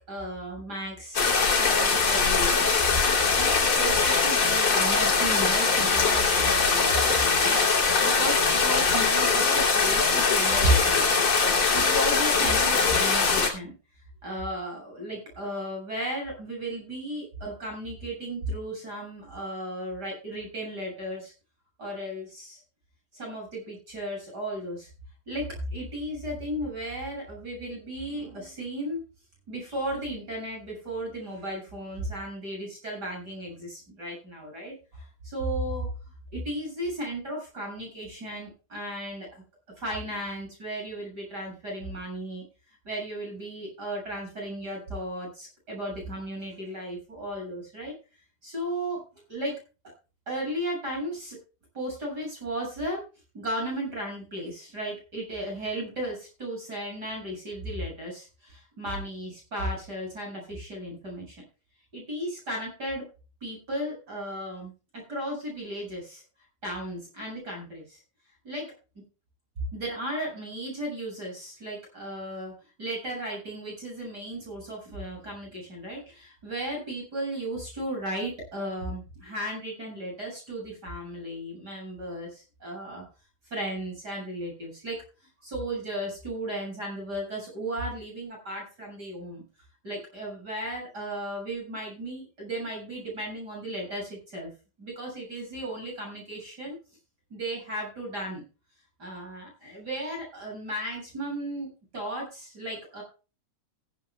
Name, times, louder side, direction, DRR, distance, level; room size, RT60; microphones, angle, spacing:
voice 1, 0.1-11.2 11.7-13.7 14.2-21.3 21.8-22.6 23.1-24.9 25.3-29.0 29.5-35.9 36.3-39.4 39.8-47.9 48.4-49.0 49.3-49.5 50.3-51.4 51.7-53.0 53.3-61.4 61.9-63.0 63.4-66.2 66.6-68.0 68.4-68.7 69.7-72.5 72.8-83.0 83.5-85.0 85.4-89.4 89.8-94.5 94.8-96.8 97.3-98.4 99.0-103.0, right 1 dB, 30° right, 0 dB, 7.6 m, -35 dB
sound 1, 1.1-13.5, left 4 dB, 45° left, 3.7 m, -22 dB
16.0 x 15.5 x 2.3 m, 0.33 s
omnidirectional pair, 3.5 m